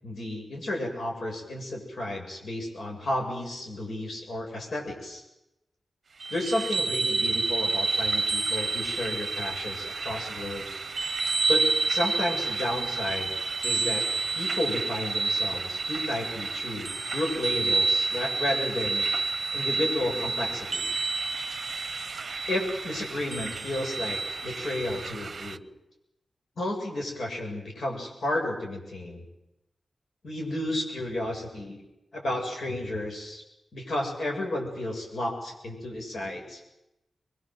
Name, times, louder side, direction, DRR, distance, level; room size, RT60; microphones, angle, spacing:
voice 1, 0.0-5.2 6.3-10.7 11.5-13.3 13.6-14.0 14.3-19.1 19.5-20.9 22.5-25.6 26.6-29.2 30.2-31.8 32.1-33.4 33.7-36.6, left 1 dB, 75° left, 0 dB, 7.8 m, -32 dB
sound 1, 6.2-25.6, right 4 dB, 55° right, 0.8 m, -29 dB
24.0 x 23.0 x 7.9 m, 0.91 s
wide cardioid pair, 115°, 0 cm